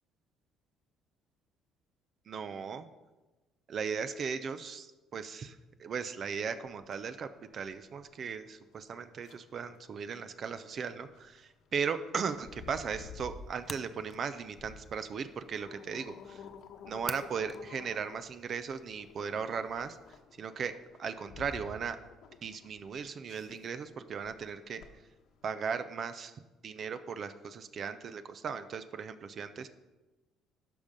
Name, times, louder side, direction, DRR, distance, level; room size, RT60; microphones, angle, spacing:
voice 1, 2.3-2.9 3.7-16.5 16.9-20.7 21.0-22.0 22.4-24.8 25.4-29.7, right 6 dB, 50° right, 11 dB, 0.6 m, -37 dB
sound 1, 6.7-25.5, left 5 dB, 70° left, 1.2 m, -52 dB
sound 2, 12.3-20.2, left 2 dB, 15° left, 0.5 m, -51 dB
12.5 x 5.4 x 5.2 m, 1.1 s
cardioid pair, 90°, 0 cm